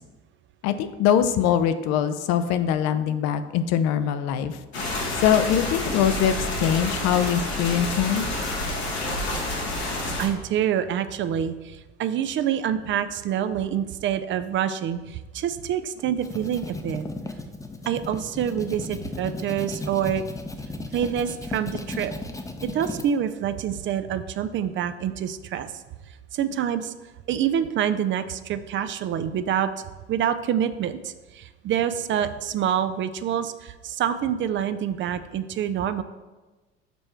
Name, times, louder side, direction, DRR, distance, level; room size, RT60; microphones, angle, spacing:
voice 1, 0.6-4.6 5.2-8.3, left 9 dB, 55° left, 11 dB, 0.6 m, -23 dB
sound 1, 4.7-10.3, left 1 dB, 85° left, 1.4 m, -28 dB
voice 2, 9.8-17.1 17.9-20.2 20.9-22.1 22.6-25.8 26.3-26.9 27.3-29.7 30.1-36.0, right 9 dB, 40° right, 12 dB, 0.5 m, -26 dB
sound 2, 16.0-23.1, left 2 dB, 10° left, 0.7 m, -35 dB
6.9 x 4.2 x 4.5 m, 1.2 s
figure-of-eight pair, 55°, 31 cm